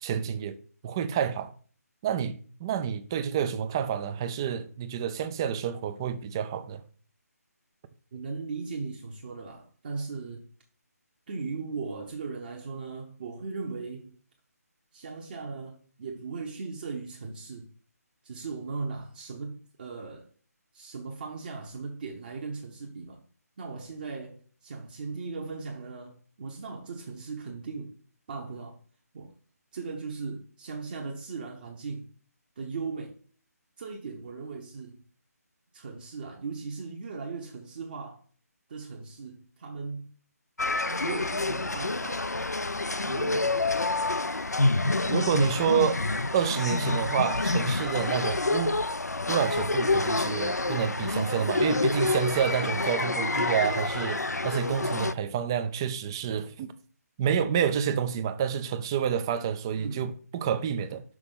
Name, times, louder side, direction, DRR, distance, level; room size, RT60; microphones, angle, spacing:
voice 1, 0.0-0.6 0.8-1.5 2.0-6.8 45.1-46.0 46.3-48.8 49.3-56.7 57.2-61.0, right 8 dB, 15° right, 0.4 m, -29 dB
voice 2, 8.1-10.5 11.3-14.1 14.9-17.7 18.2-20.3 20.7-23.2 23.6-27.9 28.3-28.8 29.1-29.3 29.7-32.1 32.6-33.2 33.8-35.0 35.7-38.2 38.7-40.1 40.9-42.3 43.0-43.7 59.8-60.1, right 4 dB, 30° right, 1.0 m, -38 dB
sound 1, 40.6-55.1, left 2 dB, 80° left, 0.5 m, -28 dB
6.1 x 5.1 x 5.4 m
figure-of-eight pair, 150°, 9 cm